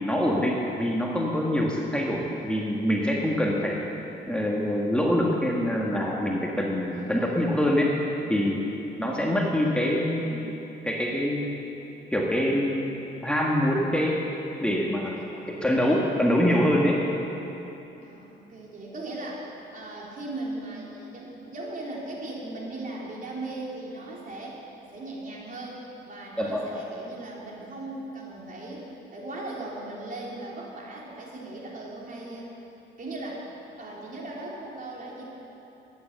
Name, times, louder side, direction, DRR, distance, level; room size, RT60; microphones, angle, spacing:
voice 1, 0.0-3.8 4.3-7.9 8.3-8.7 9.0-10.5 10.8-11.6 12.1-12.9 13.2-14.2 14.6-17.0 26.4-26.7, equal, 5° left, -3 dB, 1.6 m, -25 dB
voice 2, 6.9-7.6 15.2-15.6 15.9-16.2 16.4-16.8 18.0-24.6 24.9-32.5 33.0-33.5 33.8-35.2, right 2 dB, 45° right, -4 dB, 3.6 m, -38 dB
14.5 x 10.0 x 6.8 m, 3.0 s
cardioid pair, 90°, 20 cm